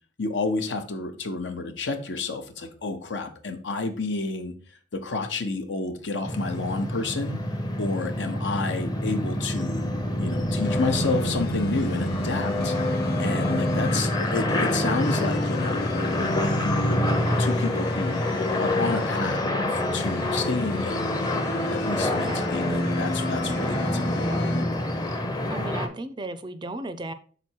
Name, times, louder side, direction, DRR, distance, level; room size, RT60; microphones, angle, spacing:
voice 1, 0.2-4.5 4.9-7.4 7.8-17.0 17.4-19.4 19.7-21.1 21.7-24.4, left 3 dB, 80° left, 0.9 m, -30 dB
sound 1, 6.2-25.9, left 1 dB, 20° left, 0.7 m, -26 dB
sound 2, 10.6-24.6, left 3 dB, 60° left, 0.5 m, -35 dB
voice 2, 25.5-27.1, right 2 dB, 25° right, 0.4 m, -35 dB
6.0 x 4.0 x 4.5 m
head